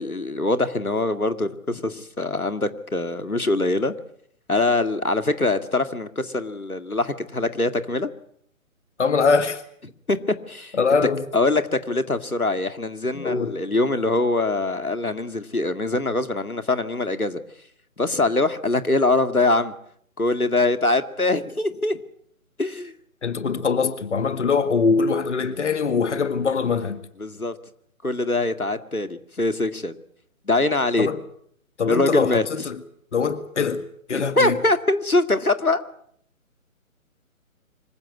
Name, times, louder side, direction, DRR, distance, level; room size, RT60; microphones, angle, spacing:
voice 1, 0.0-3.9 4.5-8.1 10.1-10.8 11.3-17.4 18.0-19.7 20.2-22.0 22.6-22.9 27.2-27.5 28.0-29.9 30.5-31.1 31.9-32.5 34.1-35.8, left 2 dB, 85° left, 2.3 m, -23 dB
voice 2, 9.0-9.6 10.7-11.2 13.1-13.6 23.2-27.0 31.0-31.2 31.8-32.8 33.1-34.6, left 5 dB, 55° left, 1.9 m, -23 dB
26.0 x 16.5 x 9.5 m
figure-of-eight pair, 140°, 42 cm